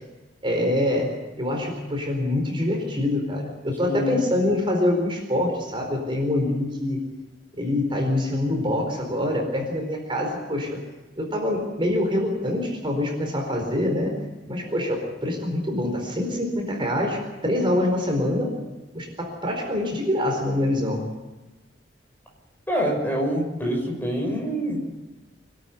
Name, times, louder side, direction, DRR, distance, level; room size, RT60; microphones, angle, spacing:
voice 1, 0.4-1.1 1.4-7.0 7.6-10.8 11.2-14.1 14.5-18.5 18.9-21.0, left 1 dB, 30° right, 2 dB, 4.5 m, -25 dB
voice 2, 3.8-4.2 22.7-24.8, equal, 10° left, 0 dB, 5.9 m, -25 dB
25.5 x 12.5 x 9.5 m, 1.1 s
head